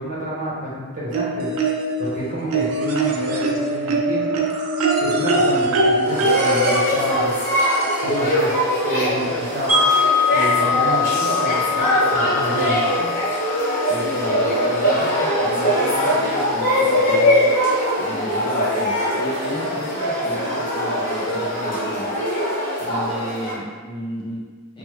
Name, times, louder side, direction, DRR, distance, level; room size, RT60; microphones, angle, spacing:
voice 1, 0.0-1.5 2.0-4.4 5.0-7.3 8.0-9.9 10.3-11.9 12.1-13.1, right 1 dB, 40° right, -7 dB, 0.9 m, -29 dB
sound 1, 1.1-2.1 2.5-8.2 9.4-9.5 9.9-10.0, right 2 dB, 65° right, 0.4 m, -22 dB
sound 2, 6.1-23.5, equal, 40° left, 1.0 m, -21 dB
Wind chime, 9.7-15.7, left 6 dB, 10° right, 1.1 m, -23 dB
voice 2, 13.9-17.7 18.0-22.2 22.8-24.8, equal, 20° left, -5 dB, 0.4 m, -33 dB
3.3 x 2.1 x 3.0 m, 1.5 s
head